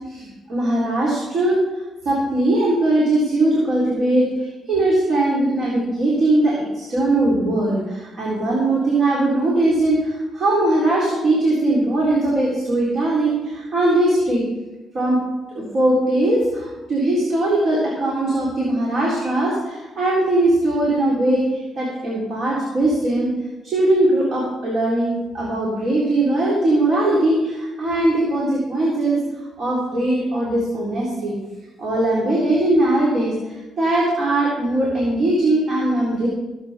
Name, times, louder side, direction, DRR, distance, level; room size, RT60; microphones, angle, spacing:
voice 1, 0.1-1.6 2.0-14.4 14.9-15.2 15.5-23.3 23.6-29.2 29.6-31.4 31.8-36.3, right 1 dB, 55° right, -5 dB, 3.9 m, -20 dB
17.0 x 8.3 x 4.4 m, 1.1 s
cardioid pair, 90°, 0 cm